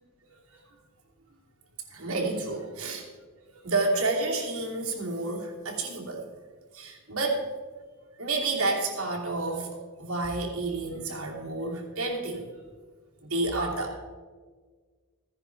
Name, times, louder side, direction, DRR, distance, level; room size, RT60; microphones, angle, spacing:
voice 1, 1.9-3.0 3.5-6.2 6.7-7.5 8.2-12.5 13.3-14.0, right 2 dB, 70° right, 0 dB, 2.7 m, -30 dB
15.0 x 10.0 x 4.6 m, 1.5 s
head